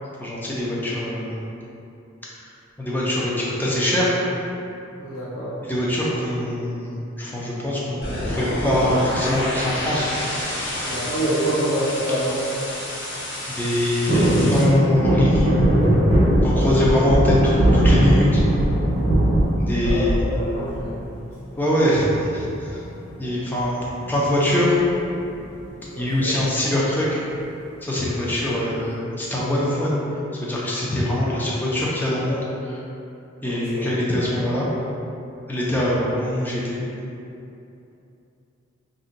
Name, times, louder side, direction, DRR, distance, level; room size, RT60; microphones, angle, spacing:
voice 1, 0.2-1.3 2.8-4.2 5.6-8.0 8.3-10.1 10.8-10.9 13.5-15.5 16.4-18.4 19.6-20.2 21.6-22.1 22.3-22.8 23.2-23.8 24.1-24.8 26.0-27.2 27.8-30.0 30.4-32.8 33.4-34.7 35.5-36.8, left 1 dB, 10° left, -6 dB, 0.4 m, -23 dB
voice 2, 5.0-5.5 10.8-12.4 16.4-16.7 19.8-21.0 25.9-26.3 33.4-33.9, right 1 dB, 85° left, -10 dB, 1.0 m, -27 dB
sound 1, 8.0-14.6, left 1 dB, 60° left, 0.7 m, -29 dB
sound 2, 14.1-20.3 20.7-21.3 22.6-23.0 23.2-23.3 23.6-23.9 24.8-25.7 26.1-26.2, right 1 dB, 35° right, 0.7 m, -20 dB
sound 3, 15.3-15.7 16.1-16.4 16.8-17.2 17.6-17.9 18.3-18.7 19.1-19.4 19.8-20.2, right 1 dB, 80° right, 0.4 m, -22 dB
2.6 x 2.2 x 3.8 m, 2.8 s
head